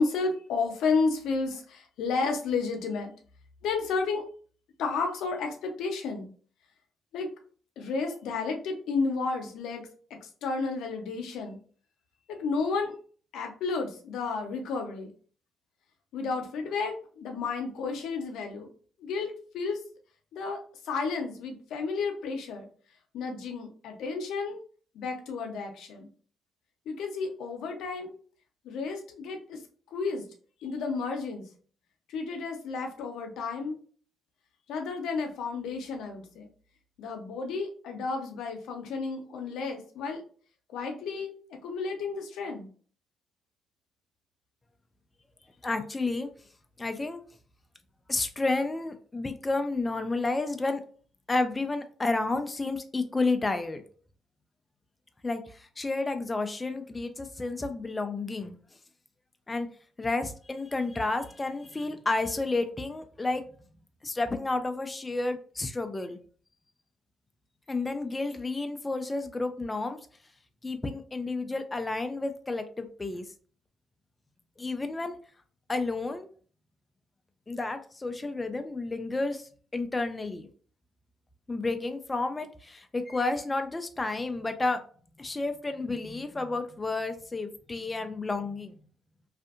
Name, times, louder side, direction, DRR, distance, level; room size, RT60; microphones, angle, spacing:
voice 1, 0.0-3.1 3.6-4.2 4.8-6.3 7.1-7.3 7.8-9.8 10.2-11.6 12.3-12.9 13.3-15.1 16.1-18.7 19.0-19.8 20.3-20.6 20.8-22.7 23.1-24.6 24.9-26.1 26.9-28.1 28.6-29.6 29.9-30.2 30.6-31.5 32.1-33.8 34.7-36.5 37.0-40.2 40.7-42.7, left 4 dB, 85° left, 4 dB, 0.6 m, -32 dB
voice 2, 45.6-46.3 46.8-47.2 48.1-50.8 51.3-53.8 55.2-58.6 59.5-59.7 60.0-63.4 64.0-66.2 67.7-70.0 70.6-73.3 74.6-75.2 75.7-76.3 77.5-80.5 81.5-84.8 85.2-88.8, left 3 dB, 20° left, 7 dB, 0.3 m, -31 dB
2.6 x 2.5 x 2.4 m, 0.43 s
cardioid pair, 90°, 0 cm